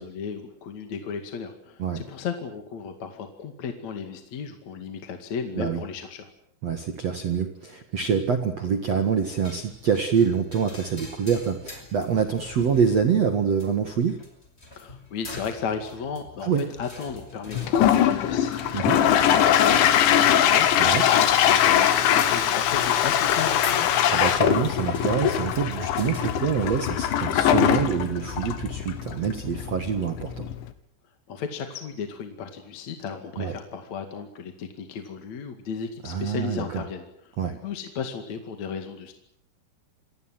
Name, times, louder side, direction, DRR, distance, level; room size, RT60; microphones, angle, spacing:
voice 1, 0.0-6.3 14.8-23.9 31.3-37.4 37.6-39.1, left 6 dB, 45° left, 6 dB, 2.8 m, -35 dB
voice 2, 6.6-14.2 16.4-16.6 18.7-19.0 20.8-21.0 24.1-30.5 33.4-33.5 36.0-36.8 37.4-37.6, right 7 dB, 55° right, 7 dB, 1.9 m, -25 dB
sound 1, 9.4-27.0, left 1 dB, 15° left, 5.7 m, -44 dB
Toilet flush, 17.5-30.7, left 10 dB, 75° left, 4.0 m, -22 dB
28.0 x 22.0 x 7.7 m, 0.69 s
omnidirectional pair, 5.4 m